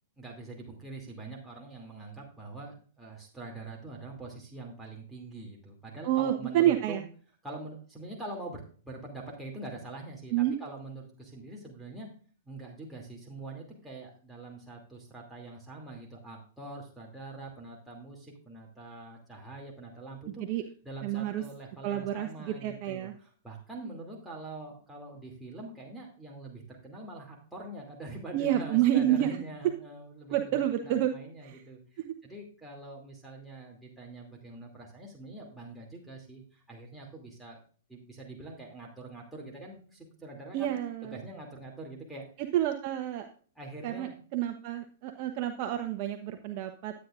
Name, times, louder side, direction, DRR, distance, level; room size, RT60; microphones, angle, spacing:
voice 1, 0.2-7.0 7.4-12.1 12.4-20.4 20.8-37.6 37.9-42.3 43.5-44.2, right 2 dB, 5° right, -3 dB, 2.7 m, -44 dB
voice 2, 6.0-7.0 10.3-10.6 20.5-20.6 21.0-21.4 21.8-23.1 28.3-29.4 30.3-31.1 31.4-31.6 40.5-41.2 42.5-43.3 43.8-46.9, right 12 dB, 45° right, 6 dB, 1.0 m, -29 dB
12.5 x 9.1 x 2.5 m, 0.41 s
hypercardioid pair, 115°, 0 cm